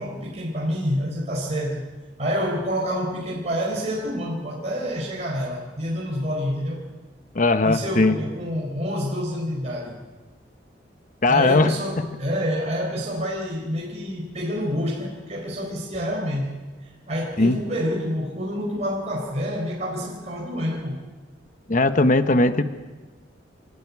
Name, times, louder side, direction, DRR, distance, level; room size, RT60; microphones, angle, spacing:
voice 1, 0.0-1.9 2.2-6.8 7.6-10.0 11.3-16.6 16.8-21.0, equal, 40° right, -3 dB, 4.3 m, -28 dB
voice 2, 7.3-8.2 11.2-11.7 12.0-12.1 17.4-17.6 21.7-22.6, left 2 dB, 45° left, 10 dB, 1.0 m, -18 dB
29.0 x 12.5 x 9.8 m, 1.3 s
head